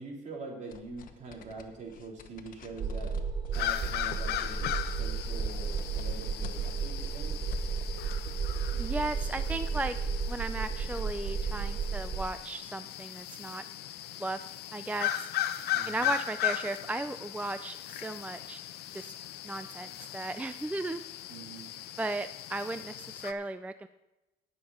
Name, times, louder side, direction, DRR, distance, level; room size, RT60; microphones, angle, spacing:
voice 1, 0.0-3.1 3.5-7.4 15.7-16.1 21.3-21.7, right 3 dB, 45° right, -2 dB, 3.7 m, -44 dB
sound 1, 0.7-7.8, left 7 dB, 55° left, 1.1 m, -49 dB
sound 2, 2.8-12.2, right 6 dB, 30° right, 0.9 m, -33 dB
sound 3, 3.5-23.3, left 13 dB, 75° left, 0.7 m, -38 dB
voice 2, 8.8-10.0 10.3-13.6 14.2-14.4 14.7-15.3 15.9-18.6 18.9-19.1 19.4-21.0 22.0-23.9, right 2 dB, 10° right, 11 dB, 0.3 m, -36 dB
18.0 x 6.8 x 4.2 m, 1.0 s
cardioid pair, 110°, 17 cm